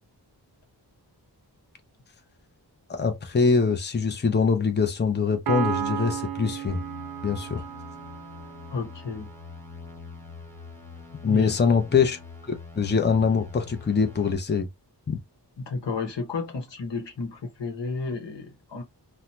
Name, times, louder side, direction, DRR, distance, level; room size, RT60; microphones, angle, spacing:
voice 1, 2.9-6.8 7.2-7.7 11.2-12.2 12.5-14.7 15.1-15.2, left 5 dB, 25° left, 0.6 m, -23 dB
Piano, 5.5-9.1, right 9 dB, 60° right, 0.5 m, -33 dB
sound 1, 6.7-14.3, left 4 dB, 5° left, 0.9 m, -44 dB
voice 2, 8.7-9.3 11.2-11.5 15.6-18.8, left 4 dB, 85° left, 1.0 m, -32 dB
2.7 x 2.1 x 3.2 m
wide cardioid pair, 75°, 42 cm